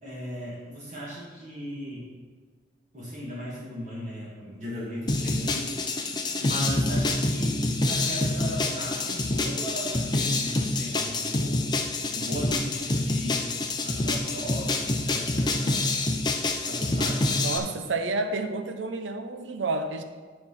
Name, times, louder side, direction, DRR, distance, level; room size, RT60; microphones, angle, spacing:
voice 1, 0.0-2.1 2.9-5.7 6.0-11.7 12.1-13.5 13.8-15.9 16.6-17.6, equal, 40° right, -7 dB, 2.0 m, -37 dB
sound 1, 5.1-17.6, left 2 dB, 20° left, 0.6 m, -27 dB
voice 2, 17.4-20.0, right 3 dB, 85° right, 7 dB, 0.6 m, -30 dB
9.9 x 4.4 x 5.6 m, 1.5 s
head